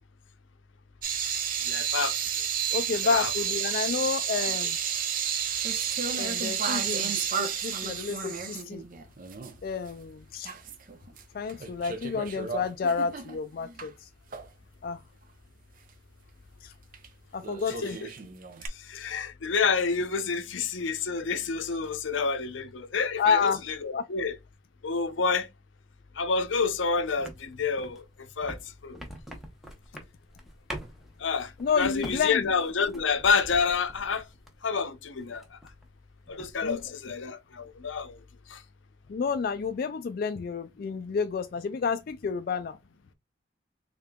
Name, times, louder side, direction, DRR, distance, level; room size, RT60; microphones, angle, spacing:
sound 1, 1.0-9.6 9.9-10.0 10.4-11.2 11.5-13.9 14.3-14.5 16.9-17.1 17.4-18.7, right 7 dB, 45° right, 0.6 m, -31 dB
voice 1, 1.6-2.2 3.0-3.3 17.8-18.1 18.7-23.5 23.8-24.3 24.8-25.5 26.2-28.6 28.8-29.0 31.2-31.5 31.8-34.2 34.6-35.5 36.3-38.2 38.5-38.6, left 5 dB, 85° left, 0.6 m, -28 dB
voice 2, 2.7-4.8 6.1-8.8 9.6-10.5 11.3-14.1 14.8-15.0 16.6-16.7 17.3-18.0 23.2-23.6 23.9-24.0 31.6-32.5 36.6-36.8 39.1-42.8, left 5 dB, 50° left, 0.3 m, -30 dB
sound 2, 27.2-34.7 35.1-35.9 36.2-36.9, equal, ahead, 0.8 m, -45 dB
3.7 x 3.5 x 2.2 m
head